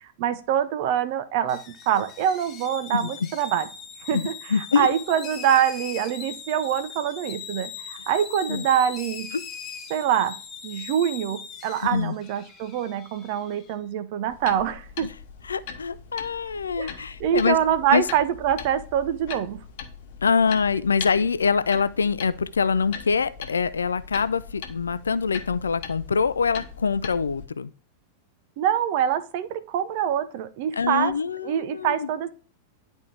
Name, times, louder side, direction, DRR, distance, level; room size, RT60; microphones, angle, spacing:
voice 1, 0.2-3.7 4.1-4.3 4.8-9.3 9.9-10.4 10.6-15.1 16.8-16.9 17.2-19.6 28.6-31.1 31.4-32.3, right 9 dB, 50° right, 0.8 m, -25 dB
sound 1, 1.5-13.7, left 7 dB, 25° left, 1.2 m, -40 dB
voice 2, 4.1-4.9 8.5-8.7 9.3-9.4 11.9-12.1 15.0-15.1 15.4-17.6 17.9-18.0 20.2-27.7 30.7-32.1, left 5 dB, 70° left, 0.4 m, -24 dB
sound 2, 14.3-27.5, left 7 dB, 50° left, 1.0 m, -40 dB
10.5 x 4.2 x 3.4 m
figure-of-eight pair, 90°, 0 cm